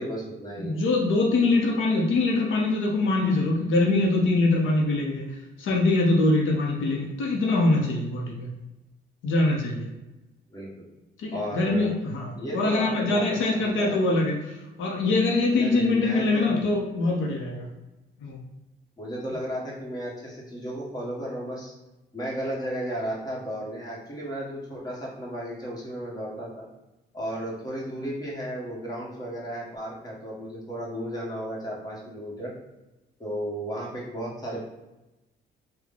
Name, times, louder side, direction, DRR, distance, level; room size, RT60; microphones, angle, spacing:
voice 1, 0.0-0.7 10.5-10.9 11.3-11.9 12.3-14.0 15.5-16.5 19.0-21.7 22.1-26.7 27.1-32.5 33.2-34.7, equal, 20° left, -4 dB, 1.3 m, -34 dB
voice 2, 0.6-5.2 5.6-8.5 9.2-9.9 11.2-17.7 18.2-18.4, left 2 dB, 80° left, -1 dB, 0.8 m, -23 dB
3.6 x 2.3 x 3.5 m, 1.0 s
cardioid pair, 90°, 20 cm